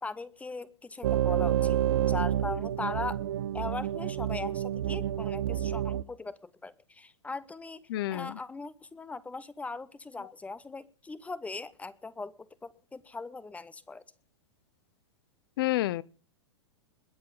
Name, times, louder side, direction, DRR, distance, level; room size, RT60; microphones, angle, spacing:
voice 1, 0.0-1.8 2.1-3.2 3.5-7.8 8.1-14.0, left 3 dB, 10° left, 0.8 m, -39 dB
sound 1, 1.0-6.0, right 11 dB, 65° right, 0.8 m, -29 dB
voice 2, 7.9-8.4 15.6-16.0, left 16 dB, 55° left, 0.7 m, -29 dB
21.0 x 7.6 x 5.6 m
hypercardioid pair, 110°, 14 cm